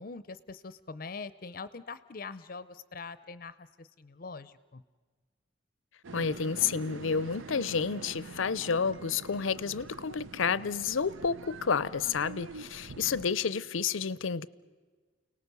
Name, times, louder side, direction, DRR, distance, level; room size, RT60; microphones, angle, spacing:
voice 1, 0.0-4.8, left 4 dB, 45° left, 15 dB, 0.6 m, -43 dB
sound 1, 6.0-13.3, right 4 dB, 85° right, 0.7 m, -45 dB
voice 2, 6.1-14.5, left 6 dB, 90° left, 19 dB, 0.6 m, -30 dB
29.5 x 18.5 x 6.8 m, 1.5 s
head